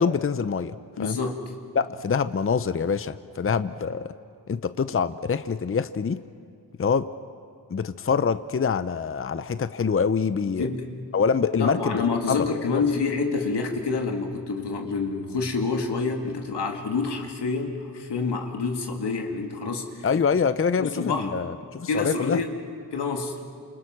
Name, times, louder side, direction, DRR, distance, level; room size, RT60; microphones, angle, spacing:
voice 1, 0.0-1.2 1.7-4.1 4.5-6.2 6.8-7.1 7.7-10.7 11.1-12.5 20.0-22.4, left 6 dB, 35° left, 12 dB, 0.7 m, -25 dB
voice 2, 1.0-1.4 10.6-10.9 11.5-19.9 20.8-21.3 21.9-22.5 22.9-23.4, left 4 dB, 85° left, 3 dB, 2.3 m, -27 dB
29.5 x 27.0 x 6.2 m, 2.3 s
cardioid pair, 65°, 39 cm